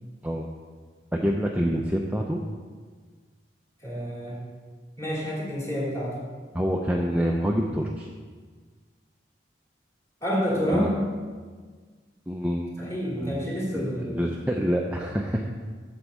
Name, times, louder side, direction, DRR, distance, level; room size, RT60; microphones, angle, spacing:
voice 1, 1.1-2.4 6.5-8.1 10.7-10.9 12.3-12.9 13.2-15.5, equal, 10° right, 0 dB, 0.4 m, -27 dB
voice 2, 3.8-4.4 5.0-6.1 10.2-10.9 12.8-14.3, equal, 15° left, -5 dB, 2.3 m, -28 dB
8.0 x 5.2 x 7.1 m, 1.5 s
head